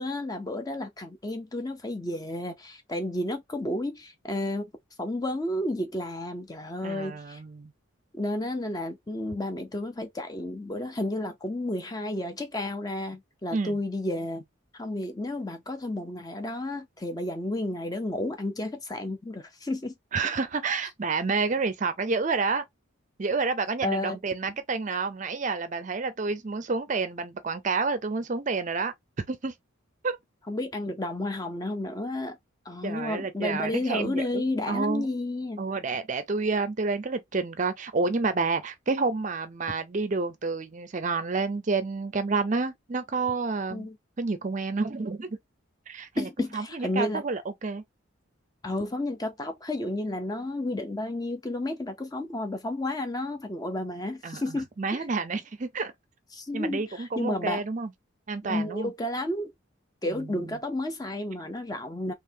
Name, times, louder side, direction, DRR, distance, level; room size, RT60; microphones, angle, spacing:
voice 1, 0.0-4.7 5.0-7.4 8.1-14.4 14.7-19.9 23.8-24.2 30.5-32.4 32.7-35.6 43.7-44.0 46.2-47.2 48.6-55.0 56.3-57.6 58.4-59.5 60.0-62.1, left 1 dB, 20° left, 0.5 m, -32 dB
voice 2, 6.8-7.7 13.5-13.8 20.1-22.6 23.2-28.9 29.3-29.5 30.0-30.2 32.8-35.1 35.6-43.9 44.2-45.4 45.9-47.8 54.2-55.9 56.5-57.9 58.3-58.9 60.0-60.6, right 4 dB, 35° right, 0.5 m, -29 dB
3.8 x 2.9 x 2.7 m
head